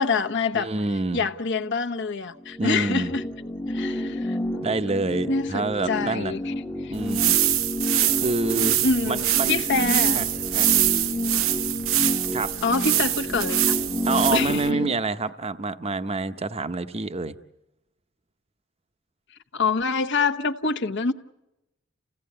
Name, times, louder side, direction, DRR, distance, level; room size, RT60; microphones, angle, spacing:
voice 1, 0.0-0.7 1.1-3.3 3.7-4.6 5.3-6.5 6.8-6.9 7.2-7.3 8.8-9.2 9.5-10.2 12.6-13.8 14.3-14.8 19.5-21.1, left 4 dB, 60° left, 1.1 m, -26 dB
voice 2, 0.5-1.2 2.6-3.1 4.6-6.3 6.9-7.4 8.2-8.8 9.1-9.6 10.1-10.2 10.5-10.7 12.3-12.5 14.1-17.4, right 3 dB, 30° right, 0.7 m, -27 dB
sound 1, 2.4-14.9, left 1 dB, 10° left, 0.9 m, -30 dB
sound 2, 6.9-14.7, right 13 dB, 90° right, 0.8 m, -24 dB
29.0 x 16.5 x 8.6 m
head